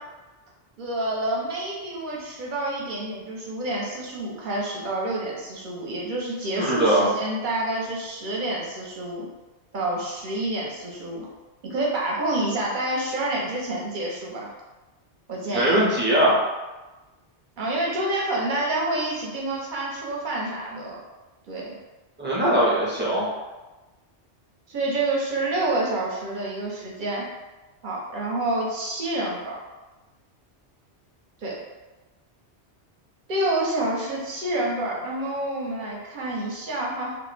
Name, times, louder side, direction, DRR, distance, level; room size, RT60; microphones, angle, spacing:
voice 1, 0.8-9.3 9.7-11.3 11.6-14.5 15.3-15.8 17.6-21.0 21.5-21.8 24.7-27.2 27.8-29.6 31.4-31.6 33.3-37.1, right 1 dB, 55° right, -3 dB, 0.6 m, -28 dB
voice 2, 6.6-7.1 15.5-16.4 22.2-23.3, right 1 dB, 15° right, -7 dB, 0.4 m, -20 dB
2.3 x 2.0 x 3.1 m, 1.1 s
omnidirectional pair, 1.2 m